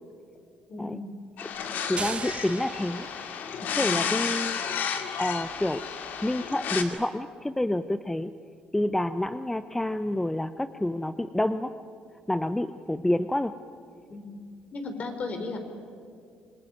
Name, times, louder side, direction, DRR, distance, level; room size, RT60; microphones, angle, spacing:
voice 1, 0.7-1.1 3.8-4.1 14.1-14.4 14.7-15.6, left 3 dB, 45° left, 6 dB, 4.6 m, -36 dB
sound 1, 1.4-6.8, left 7 dB, 65° left, 2.4 m, -32 dB
voice 2, 1.9-3.1 3.7-4.6 5.2-5.8 6.2-8.3 8.7-11.7 12.3-13.5, left 1 dB, 10° left, 11 dB, 0.8 m, -28 dB
sound 2, 2.0-3.8, right 5 dB, 35° right, 1.6 m, -38 dB
26.0 x 21.0 x 9.7 m, 2.3 s
supercardioid pair, 80°, 3 cm